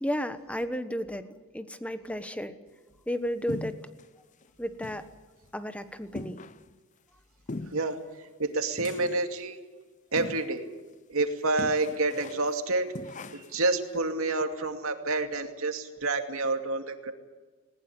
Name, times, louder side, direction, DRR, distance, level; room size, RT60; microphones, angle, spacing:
voice 1, 0.0-1.2 1.5-2.5 3.1-3.8 4.6-5.1 5.5-6.4, equal, 5° left, 10 dB, 1.2 m, -33 dB
sound 1, 3.5-4.1 4.4-4.5 4.8-5.1 5.4-5.5 6.2-6.7 7.5-7.9 8.8-9.3 10.2-10.6 10.9-11.0 11.6-12.5 12.9-13.6, left 2 dB, 35° left, 0.6 m, -40 dB
voice 2, 7.7-9.6 10.1-10.7 11.1-12.9 13.3-17.1, right 3 dB, 85° right, 6 dB, 2.4 m, -29 dB
20.0 x 20.0 x 9.8 m, 1.3 s
head